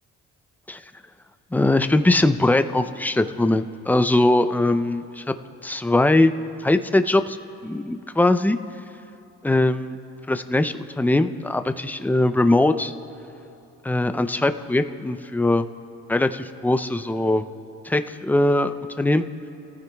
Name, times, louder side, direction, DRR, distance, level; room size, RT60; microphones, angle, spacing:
voice 1, 1.5-5.3 5.6-6.3 6.6-7.4 7.6-8.6 9.4-10.0 10.3-12.9 13.8-15.7 16.1-17.4 17.8-19.2, left 2 dB, 5° left, 9 dB, 0.5 m, -21 dB
29.0 x 14.5 x 2.3 m, 2.9 s
cardioid pair, 90°, 30 cm